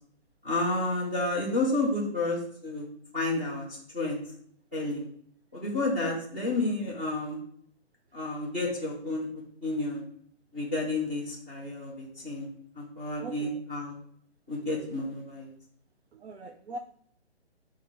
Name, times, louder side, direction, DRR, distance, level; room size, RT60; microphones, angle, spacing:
voice 1, 0.4-2.9 3.1-4.2 4.7-5.0 5.5-7.4 8.1-9.3 9.6-10.0 10.5-12.5 12.7-14.0 14.5-15.5, left 2 dB, 10° right, -6 dB, 0.5 m, -30 dB
voice 2, 13.2-13.6 16.1-16.8, right 2 dB, 70° right, 6 dB, 0.5 m, -41 dB
4.7 x 2.1 x 4.7 m, 0.64 s
hypercardioid pair, 155°, 33 cm